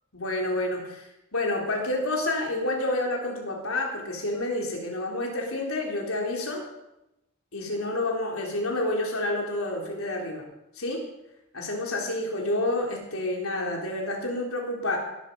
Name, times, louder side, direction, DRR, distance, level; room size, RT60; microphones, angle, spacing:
voice 1, 0.1-1.1 1.3-6.6 7.5-10.4 10.8-11.0 11.5-15.0, left 1 dB, 85° left, 0 dB, 3.9 m, -29 dB
17.0 x 11.5 x 5.4 m, 0.91 s
head